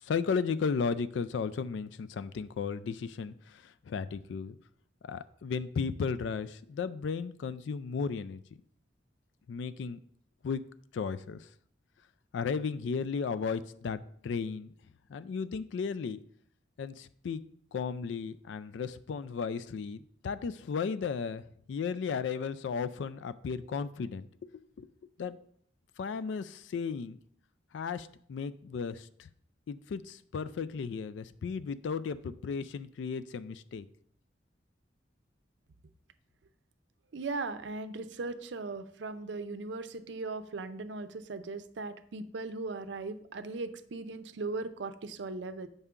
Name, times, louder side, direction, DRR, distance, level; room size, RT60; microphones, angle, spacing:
voice 1, 0.0-4.6 5.0-8.4 9.5-10.0 10.4-10.6 10.9-11.5 12.3-14.7 15.1-16.2 16.8-17.4 17.7-21.4 21.7-24.5 24.8-24.9 25.2-25.4 26.0-27.2 27.7-29.3 29.7-33.9, left 5 dB, 75° left, 14 dB, 0.3 m, -35 dB
voice 2, 37.1-45.7, right 3 dB, 70° right, 11 dB, 0.5 m, -38 dB
6.9 x 5.4 x 3.7 m, 0.63 s
head